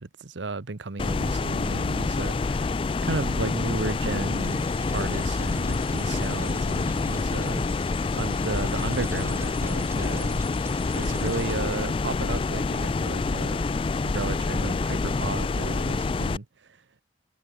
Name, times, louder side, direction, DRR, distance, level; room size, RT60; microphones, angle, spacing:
voice 1, 0.0-7.6 8.1-10.4 10.9-13.6 14.0-16.5, right 3 dB, 85° right, 0.9 m, -33 dB
sound 1, 1.0-16.4, left 3 dB, 30° left, 0.3 m, -27 dB
sound 2, 4.3-12.2, right 3 dB, 15° right, 5.7 m, -47 dB
head